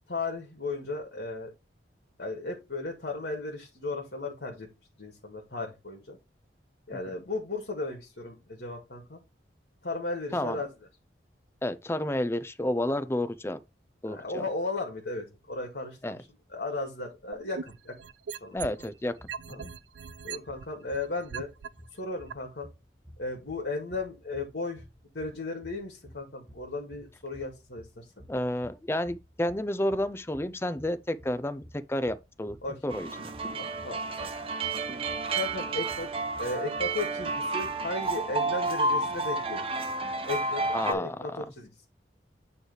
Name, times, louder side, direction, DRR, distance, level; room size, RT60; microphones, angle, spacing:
voice 1, 0.1-1.5 2.2-4.7 5.0-6.2 6.9-9.2 9.8-10.7 14.0-16.2 16.5-17.9 18.3-18.6 19.5-19.6 20.2-21.5 21.9-22.7 23.2-24.8 25.1-28.0 32.6-32.9 33.5-34.3 34.7-35.1 35.3-36.1 36.4-39.8 40.3-41.7, left 3 dB, 65° left, 1.8 m, -35 dB
voice 2, 11.6-13.6 14.0-14.4 16.0-16.2 18.5-19.2 19.5-19.7 28.3-32.6 32.8-33.1 40.7-41.4, left 1 dB, 15° left, 0.5 m, -30 dB
sound 1, 17.3-18.9 19.3-21.7 22.3-22.4, right 7 dB, 90° right, 0.4 m, -39 dB
sound 2, 18.9-38.1, equal, 5° right, 1.1 m, -54 dB
sound 3, 32.9-40.9, right 3 dB, 30° right, 0.8 m, -31 dB
8.7 x 3.3 x 4.8 m
head